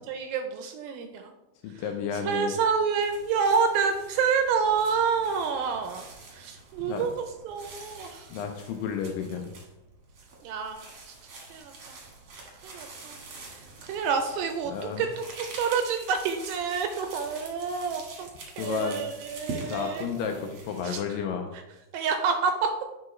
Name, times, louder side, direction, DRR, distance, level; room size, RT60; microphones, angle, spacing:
voice 1, 0.1-1.3 2.3-7.1 7.5-8.3 10.4-10.8 11.5-11.7 12.6-13.2 13.9-18.3 18.6-20.1 20.8-21.0 21.9-22.7, right 6 dB, 80° right, 6 dB, 2.2 m, -28 dB
voice 2, 1.6-2.6 6.8-7.1 8.3-9.5 14.7-15.1 18.6-19.0 19.7-21.5, left 7 dB, 85° left, 3 dB, 2.0 m, -32 dB
sound 1, 3.0-20.8, right 3 dB, 60° right, 1.5 m, -45 dB
9.5 x 4.5 x 3.1 m, 1.0 s
omnidirectional pair, 4.5 m